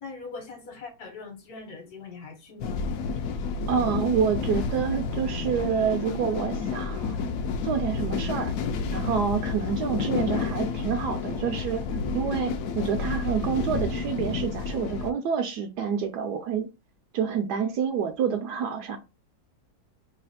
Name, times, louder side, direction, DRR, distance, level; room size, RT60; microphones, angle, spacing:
voice 1, 0.0-2.9, left 4 dB, 60° left, 1.3 m, -41 dB
sound 1, 2.6-15.1, left 5 dB, 80° left, 0.7 m, -30 dB
voice 2, 3.7-7.2 7.6-8.5 8.9-11.8 12.1-16.7 17.1-19.0, right 7 dB, 70° right, 1.0 m, -28 dB
3.2 x 2.4 x 4.0 m
omnidirectional pair, 2.0 m